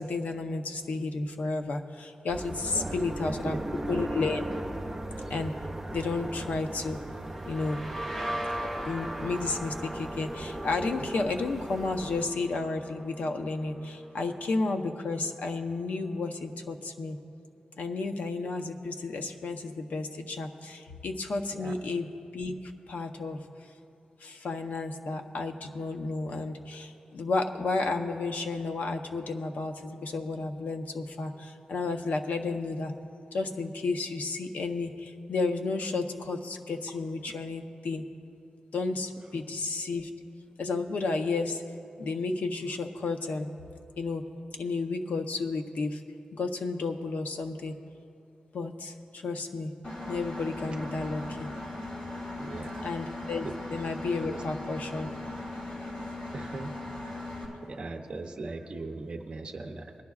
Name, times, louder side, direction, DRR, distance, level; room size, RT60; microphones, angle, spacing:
voice 1, 0.0-3.6 3.9-4.4 5.3-5.5 5.9-7.0 7.5-7.8 8.7-17.2 17.8-22.5 22.9-23.4 24.2-32.9 33.3-38.0 38.7-40.1 40.6-41.6 42.0-43.5 44.0-44.2 44.6-46.0 46.3-47.7 48.5-49.7 50.1-51.5 52.8-55.1, left 3 dB, 75° left, 4 dB, 0.7 m, -32 dB
sound 1, 2.3-12.3, right 1 dB, 10° right, 0.9 m, -38 dB
voice 2, 2.7-3.7 21.5-21.8 39.3-39.4 50.7-51.1 52.4-53.0 53.4-53.5 54.2-54.4 56.3-56.7 57.0-57.3 57.6-59.9, right 3 dB, 35° right, 0 dB, 0.6 m, -39 dB
sound 2, 7.3-14.8, equal, 15° left, 1.0 m, -40 dB
Engine, 49.8-57.4, left 2 dB, 50° left, 2.6 m, -38 dB
21.5 x 11.5 x 2.4 m, 2.8 s
wide cardioid pair, 175°, 3 cm